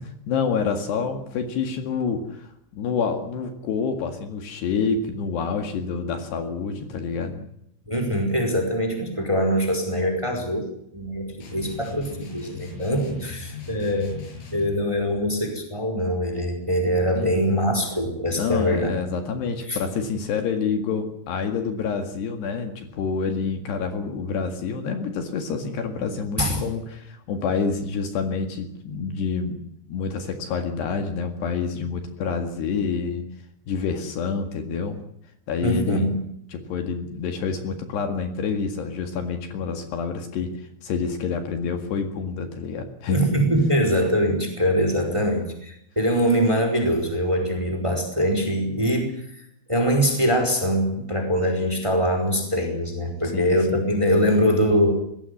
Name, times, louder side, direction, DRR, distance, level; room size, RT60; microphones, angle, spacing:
voice 1, 0.3-7.4 17.2-17.4 18.3-29.6 29.9-33.3 33.7-35.0 35.5-36.1 36.5-43.3 45.1-45.2 53.3-54.3, left 5 dB, 65° left, 6 dB, 3.9 m, -28 dB
voice 2, 7.9-10.6 10.9-14.2 14.5-18.9 19.7-19.8 26.4-26.6 35.6-36.2 43.1-49.2 49.7-54.9, equal, 5° right, 5 dB, 4.0 m, -23 dB
sound 1, 11.4-14.8, left 4 dB, 80° left, 9.1 m, -38 dB
21.0 x 16.5 x 9.6 m, 0.74 s
omnidirectional pair, 5.4 m